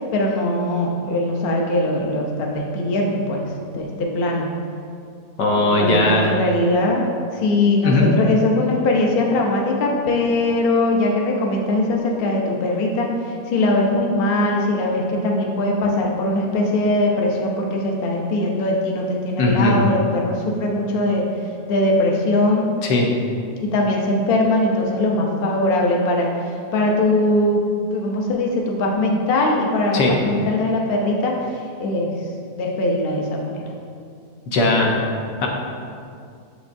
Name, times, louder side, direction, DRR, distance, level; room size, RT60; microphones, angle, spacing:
voice 1, 0.1-3.4 3.7-4.5 5.6-7.1 7.3-21.2 21.7-22.6 23.6-27.6 27.9-31.4 31.8-32.1 32.6-33.6, left 2 dB, 50° left, -1 dB, 0.7 m, -21 dB
voice 2, 5.4-6.3 7.8-8.1 19.4-19.8 22.8-23.1 29.9-30.1 34.5-34.9 35.4-35.5, left 2 dB, 85° left, 0 dB, 1.5 m, -18 dB
7.1 x 5.3 x 2.6 m, 2.4 s
omnidirectional pair, 1.8 m